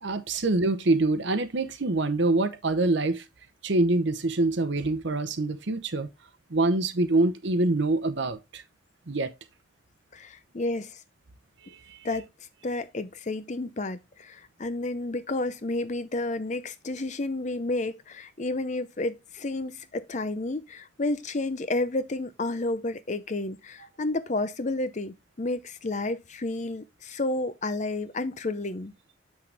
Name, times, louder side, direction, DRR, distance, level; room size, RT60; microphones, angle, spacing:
voice 1, 0.0-3.2 3.6-6.1 6.5-8.6 9.1-9.3 11.6-12.0, right 2 dB, 60° right, 0.9 m, -25 dB
voice 2, 10.1-11.0 12.0-12.3 12.6-28.9, left 2 dB, 35° left, 0.6 m, -31 dB
7.6 x 6.2 x 3.3 m
head